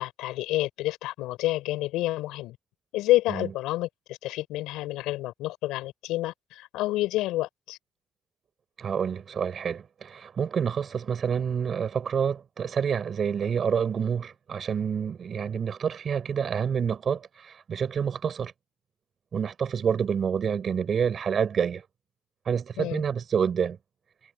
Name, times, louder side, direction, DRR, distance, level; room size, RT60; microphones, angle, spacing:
voice 1, 0.0-2.6 2.9-7.8 22.8-23.0, left 17 dB, 85° left, 5.4 m, -29 dB
voice 2, 8.8-18.5 19.3-21.8 22.5-23.8, right 7 dB, 50° right, 7.2 m, -28 dB
cardioid pair, 85°, 0 cm